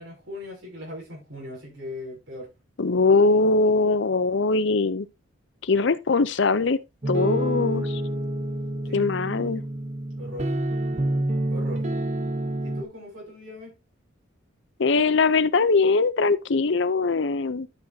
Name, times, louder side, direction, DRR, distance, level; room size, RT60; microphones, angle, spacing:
voice 1, 0.0-2.5 8.8-9.0 10.1-10.5 11.5-11.9 12.6-13.7, left 1 dB, 75° right, 6.4 m, -39 dB
voice 2, 2.8-5.1 5.6-6.8 7.1-8.0 8.9-9.6 14.8-17.7, left 3 dB, 60° left, 0.6 m, -21 dB
sound 1, 7.0-12.8, right 1 dB, 35° right, 0.8 m, -28 dB
11.5 x 6.3 x 2.7 m
head